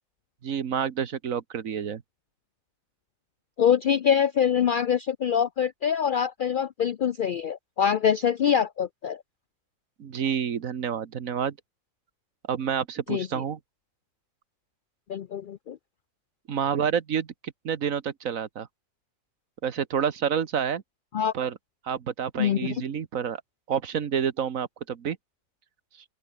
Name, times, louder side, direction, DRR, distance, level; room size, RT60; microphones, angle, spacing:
voice 1, 0.4-2.0 10.0-11.6 12.5-13.6 16.5-18.7 19.6-20.8 21.3-21.6 21.8-23.4 23.7-25.2, right 7 dB, 75° right, 1.6 m, -29 dB
voice 2, 3.6-9.2 13.1-13.3 15.1-15.8 21.1-21.3 22.4-22.7, left 8 dB, 70° left, 0.5 m, -24 dB
open air
omnidirectional pair, 1.4 m